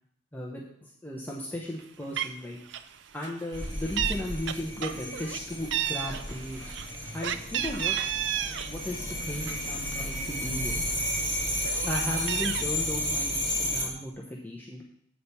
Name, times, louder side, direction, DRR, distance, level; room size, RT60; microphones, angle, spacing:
voice 1, 0.3-2.6 3.1-6.7 7.1-8.0 8.7-10.8 11.8-14.8, left 1 dB, 10° left, -3 dB, 0.9 m, -36 dB
Meow, 1.8-1.9 2.2-2.4 2.7-3.0 3.2-4.2 4.5-5.4 5.7-8.7 9.1-10.2 10.7-10.8 11.1-12.6, right 10 dB, 70° right, 0.4 m, -32 dB
sound 1, 3.5-13.8, left 1 dB, 30° right, 3.1 m, -32 dB
8.4 x 5.1 x 5.7 m, 0.68 s
head